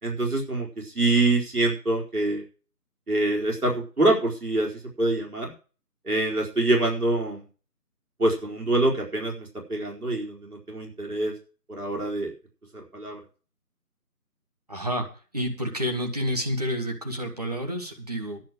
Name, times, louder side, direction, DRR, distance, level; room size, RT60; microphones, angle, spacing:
voice 1, 0.0-2.4 3.1-4.7 5.0-5.5 6.0-7.4 8.2-11.3 11.7-12.3 12.7-13.2, right 2 dB, 65° right, 0 dB, 4.5 m, -25 dB
voice 2, 14.7-15.1 15.3-18.4, equal, 25° right, 3 dB, 1.6 m, -29 dB
10.5 x 6.9 x 9.0 m, 0.36 s
figure-of-eight pair, 165°, 47 cm